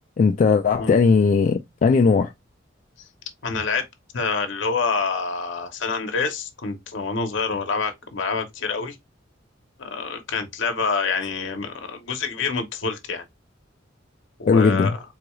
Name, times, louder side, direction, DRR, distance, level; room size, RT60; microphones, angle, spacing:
voice 1, 0.2-2.3 14.5-14.9, left 5 dB, 40° left, 0.3 m, -18 dB
voice 2, 3.4-3.8 4.1-9.0 9.8-13.2 14.4-15.0, left 4 dB, 70° left, 0.8 m, -27 dB
3.8 x 2.3 x 3.0 m
head